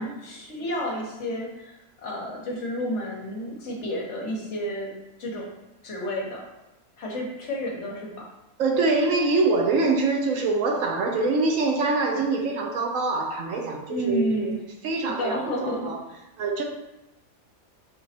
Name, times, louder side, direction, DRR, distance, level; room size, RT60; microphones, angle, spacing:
voice 1, 0.0-4.9 5.2-5.5 5.8-6.4 7.0-8.1 13.9-14.6 15.0-15.9, equal, 60° left, -2 dB, 1.2 m, -30 dB
voice 2, 8.6-14.5 14.8-16.0 16.4-16.6, right 3 dB, 75° right, 2 dB, 1.0 m, -24 dB
5.1 x 3.0 x 2.7 m, 0.95 s
omnidirectional pair, 1.4 m